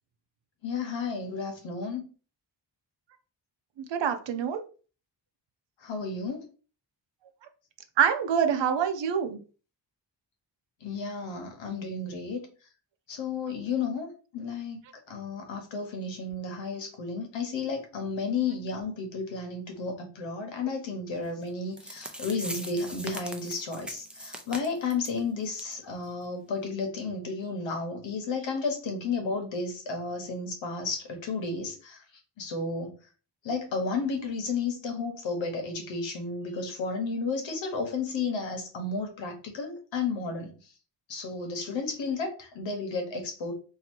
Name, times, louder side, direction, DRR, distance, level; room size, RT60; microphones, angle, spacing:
voice 1, 0.6-2.1 5.8-6.5 10.8-12.5 13.1-14.8 15.1-32.0 32.4-32.9 33.4-40.7 41.1-43.5, left 4 dB, 85° left, 4 dB, 1.2 m, -32 dB
voice 2, 3.8-4.6 8.0-9.4, right 7 dB, 75° right, 8 dB, 0.7 m, -26 dB
sound 1, 21.5-21.6 21.8-25.2 25.5-25.7 26.0-26.1 26.6-26.7, right 1 dB, ahead, 0.5 m, -40 dB
2.8 x 2.8 x 4.4 m, 0.37 s
wide cardioid pair, 125°, 44 cm